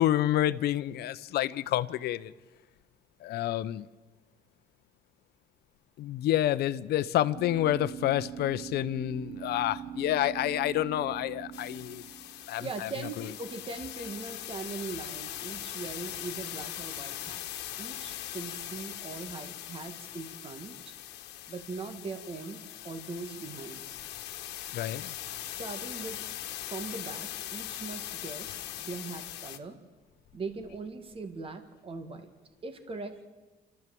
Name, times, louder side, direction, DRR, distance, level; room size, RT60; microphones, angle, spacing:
voice 1, 0.0-2.3 3.2-3.9 6.0-12.0 12.5-13.3 24.7-25.1, left 13 dB, 70° left, 0.8 m, -29 dB
sound 1, 7.3-13.1, right 9 dB, 85° right, 2.2 m, -42 dB
sound 2, 11.5-29.6, left 13 dB, 90° left, 1.3 m, -41 dB
voice 2, 12.6-17.4 17.8-20.9 21.5-23.8 25.4-26.2 26.7-29.8 30.3-32.3 32.6-33.2, right 4 dB, 35° right, 1.9 m, -40 dB
28.5 x 13.5 x 7.7 m
cardioid pair, 110°, 17 cm